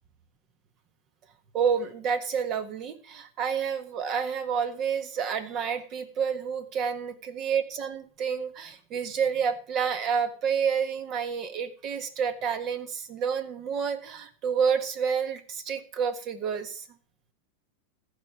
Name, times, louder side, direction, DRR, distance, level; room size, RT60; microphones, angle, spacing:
voice 1, 1.5-16.8, right 7 dB, 40° right, 10 dB, 1.6 m, -29 dB
14.5 x 5.3 x 5.8 m, 0.41 s
hypercardioid pair, 110°, 0 cm